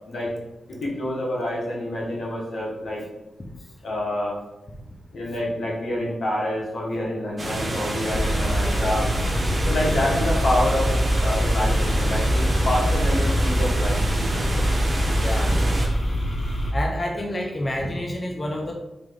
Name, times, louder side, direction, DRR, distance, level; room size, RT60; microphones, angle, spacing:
voice 1, 0.8-3.0 3.8-4.4 5.1-9.0 9.6-14.7, left 1 dB, 85° left, -3 dB, 1.1 m, -27 dB
sound 1, 7.4-15.9, right 1 dB, 40° right, 1.1 m, -28 dB
sound 2, 8.1-16.7, equal, 60° left, 1.0 m, -23 dB
voice 2, 15.2-15.6 16.7-18.7, left 1 dB, 35° left, 1 dB, 0.6 m, -28 dB
3.5 x 2.9 x 3.6 m, 0.97 s
cardioid pair, 70°, 0 cm